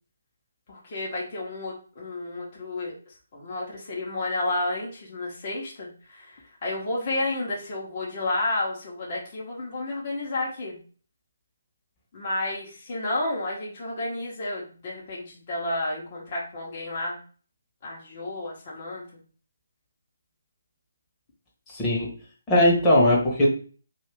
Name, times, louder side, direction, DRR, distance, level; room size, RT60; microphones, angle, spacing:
voice 1, 0.7-10.8 12.1-17.2 17.8-19.2, left 2 dB, 35° left, -4 dB, 1.2 m, -31 dB
voice 2, 21.7-22.1 22.5-23.5, left 1 dB, 15° left, -4 dB, 1.2 m, -19 dB
2.8 x 2.6 x 3.4 m, 0.39 s
figure-of-eight pair, 145°, 0 cm